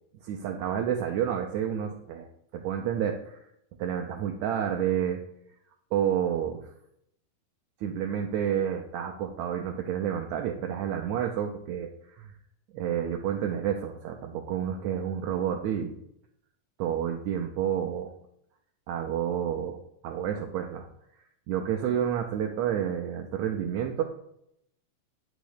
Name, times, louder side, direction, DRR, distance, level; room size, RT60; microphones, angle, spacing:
voice 1, 0.2-2.3 2.5-3.4 3.8-5.2 5.9-6.7 7.8-12.4 12.7-16.0 16.8-18.1 18.9-20.9 21.5-24.0, right 9 dB, 80° right, 2 dB, 1.6 m, -30 dB
8.7 x 3.1 x 6.5 m, 0.74 s
omnidirectional pair, 3.9 m